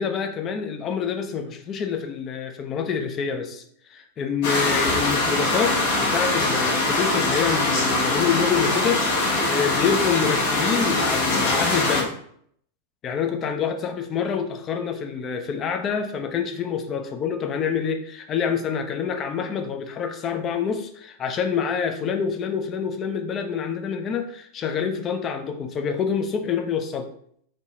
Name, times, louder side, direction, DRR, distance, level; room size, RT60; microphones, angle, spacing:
voice 1, 0.0-3.6 3.9-5.8 6.0-12.1 13.0-27.1, left 7 dB, 30° left, 6 dB, 0.5 m, -27 dB
sound 1, 4.4-12.0, left 2 dB, 50° left, 1.0 m, -22 dB
4.2 x 3.1 x 2.9 m, 0.65 s
figure-of-eight pair, 90°, 0 cm